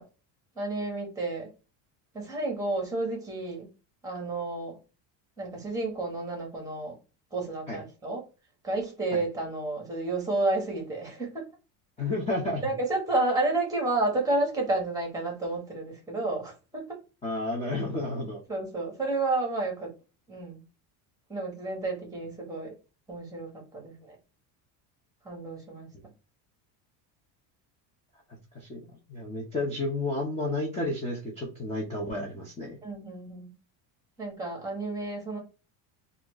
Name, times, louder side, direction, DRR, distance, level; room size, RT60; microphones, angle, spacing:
voice 1, 0.6-1.5 2.1-3.7 4.0-4.8 5.4-6.9 7.3-8.2 8.6-11.5 12.6-17.0 18.5-19.9 20.3-20.6 21.3-22.7 23.1-24.1 25.2-25.9 32.8-33.5 34.2-35.4, right 2 dB, 5° right, 1.3 m, -31 dB
voice 2, 12.0-12.7 17.2-18.4 28.5-28.8 29.1-32.8, left 2 dB, 15° left, 0.7 m, -31 dB
4.3 x 2.6 x 2.9 m
cardioid pair, 170°, 49 cm